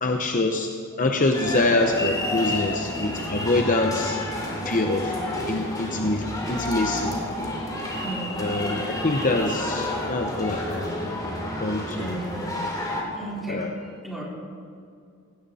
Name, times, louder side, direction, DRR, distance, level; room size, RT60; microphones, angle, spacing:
voice 1, 0.0-0.7 1.0-4.2 4.6-5.2 5.5-7.2 8.4-10.9 11.6-12.1 13.5-13.7, left 2 dB, 35° left, 4 dB, 0.9 m, -25 dB
sound 1, 1.3-13.0, left 1 dB, 15° left, 2.7 m, -30 dB
voice 2, 8.0-8.4 11.9-12.6 13.1-14.2, right 1 dB, ahead, -6 dB, 4.2 m, -35 dB
18.5 x 17.0 x 4.3 m, 2.4 s
head